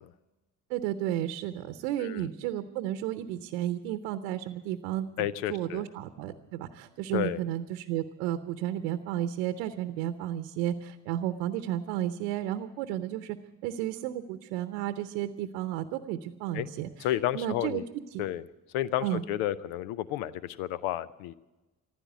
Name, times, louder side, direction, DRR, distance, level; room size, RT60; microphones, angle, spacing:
voice 1, 0.7-13.4 13.6-17.8 18.1-18.2 19.0-19.2, right 12 dB, 85° right, 10 dB, 0.8 m, -33 dB
voice 2, 5.2-5.9 7.1-7.4 16.5-16.7 17.0-17.8 18.2-18.4 18.7-21.3, left 13 dB, 80° left, 18 dB, 0.6 m, -31 dB
15.0 x 12.0 x 8.1 m, 1.1 s
hypercardioid pair, 55°, 48 cm